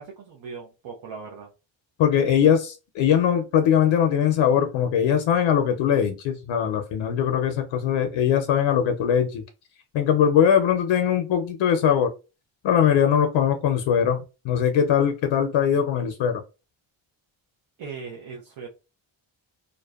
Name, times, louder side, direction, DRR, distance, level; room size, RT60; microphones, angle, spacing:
voice 1, 0.0-1.5 17.8-18.7, right 5 dB, 70° right, 0.7 m, -39 dB
voice 2, 2.0-9.4 9.9-12.1 12.6-16.4, left 8 dB, 75° left, 0.5 m, -21 dB
2.5 x 2.1 x 2.3 m
cardioid pair, 115°, 48 cm